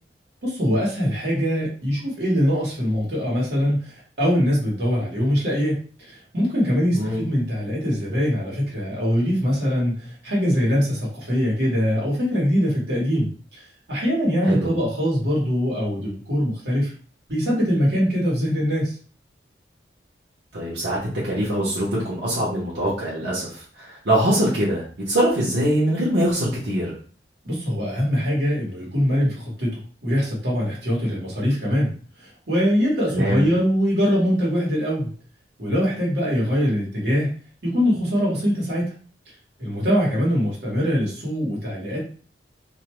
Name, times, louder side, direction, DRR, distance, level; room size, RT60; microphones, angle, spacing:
voice 1, 0.4-16.9 17.3-18.9 27.4-31.9 32.2-35.1 35.6-37.3 37.6-38.9 39.6-42.0, equal, 65° right, -5 dB, 1.2 m, -23 dB
voice 2, 20.5-21.0 21.2-26.9 33.1-33.4, right 1 dB, 90° right, -7 dB, 0.9 m, -23 dB
2.6 x 2.2 x 3.0 m, 0.42 s
head